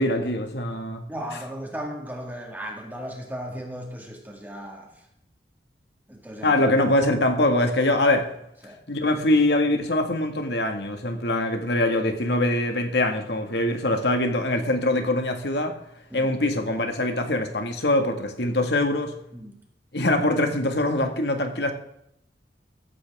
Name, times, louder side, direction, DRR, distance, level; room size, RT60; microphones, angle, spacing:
voice 1, 0.0-1.0 6.4-8.3 8.9-15.8 16.1-19.1 19.9-21.7, left 1 dB, 65° left, 5 dB, 2.0 m, -23 dB
voice 2, 1.1-4.9 6.1-6.6 8.6-8.8 16.1-16.3 19.3-19.6, equal, 10° right, 1 dB, 2.1 m, -36 dB
14.5 x 14.5 x 3.7 m, 0.76 s
head